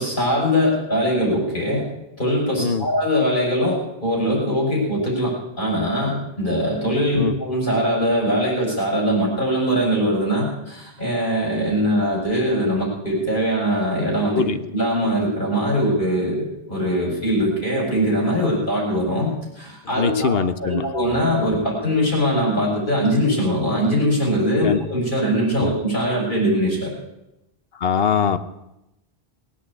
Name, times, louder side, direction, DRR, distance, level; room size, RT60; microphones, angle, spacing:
voice 1, 0.0-1.8 2.2-5.3 5.6-14.4 14.7-19.3 19.6-26.9, equal, 50° left, -4 dB, 6.2 m, -21 dB
voice 2, 19.8-20.8 24.6-24.8 25.6-25.7 27.7-28.4, left 6 dB, 70° left, 10 dB, 1.2 m, -22 dB
20.0 x 8.6 x 8.4 m, 0.89 s
omnidirectional pair, 1.1 m